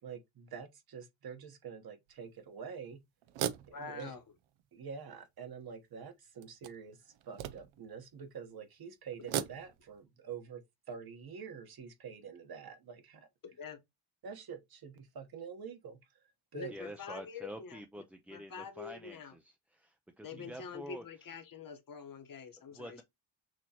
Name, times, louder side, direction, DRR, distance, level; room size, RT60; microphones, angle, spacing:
voice 1, 0.0-3.0 3.7-4.1 4.7-13.3 14.2-16.2 16.5-16.7 20.3-20.5, right 6 dB, 50° right, 1.1 m, -47 dB
sound 1, 2.1-2.2 3.2-4.6 5.2-5.3 6.4-8.0 9.1-10.0, right 10 dB, 90° right, 0.6 m, -39 dB
voice 2, 3.7-4.2 13.4-13.8 16.5-18.0 18.3-19.3 20.2-23.0, left 6 dB, 45° left, 1.1 m, -46 dB
voice 3, 16.7-21.0 22.7-23.0, equal, 5° right, 0.3 m, -47 dB
6.2 x 3.0 x 2.9 m
cardioid pair, 115°, 47 cm